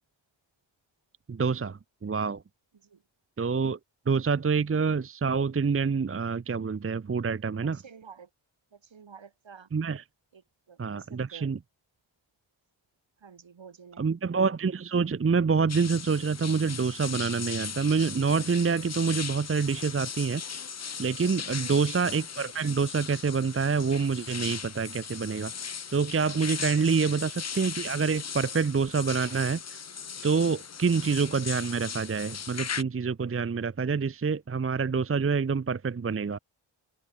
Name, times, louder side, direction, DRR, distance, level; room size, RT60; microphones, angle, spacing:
voice 1, 1.3-2.4 3.4-3.8 4.1-7.8 9.7-10.0 10.8-11.6 14.0-20.4 21.0-25.5 25.9-29.6 30.2-36.4, right 5 dB, 30° right, 0.7 m, -27 dB
voice 2, 7.6-8.3 8.7-9.7 10.3-11.5 13.2-14.1 21.5-21.8, right 6 dB, 70° right, 6.2 m, -50 dB
sound 1, 15.7-32.8, left 6 dB, 35° left, 0.6 m, -38 dB
open air
wide cardioid pair, 160°, 48 cm